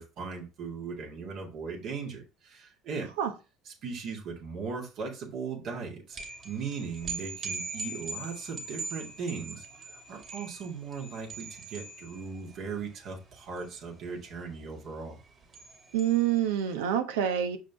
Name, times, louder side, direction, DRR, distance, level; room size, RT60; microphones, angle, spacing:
voice 1, 0.0-3.1 3.7-6.2 6.4-15.2, right 5 dB, 60° right, 2.2 m, -38 dB
sound 1, 6.1-16.8, right 3 dB, 45° right, 2.4 m, -42 dB
voice 2, 15.9-17.6, right 10 dB, 80° right, 1.0 m, -27 dB
5.8 x 5.0 x 3.6 m
hypercardioid pair, 70°, 0 cm